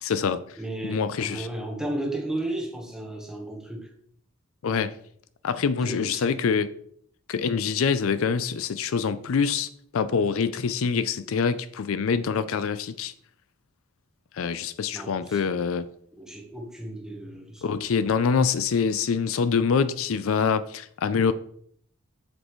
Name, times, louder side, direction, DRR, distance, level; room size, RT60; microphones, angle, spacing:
voice 1, 0.0-0.6 0.8-1.5 4.6-5.0 5.4-6.7 7.3-13.1 14.3-15.9 17.6-21.3, left 6 dB, 80° left, 0.4 m, -25 dB
voice 2, 0.6-3.9 5.8-6.4 14.9-15.4 16.2-17.7 18.0-18.1, right 1 dB, 5° right, 1.2 m, -34 dB
7.9 x 6.4 x 3.1 m
head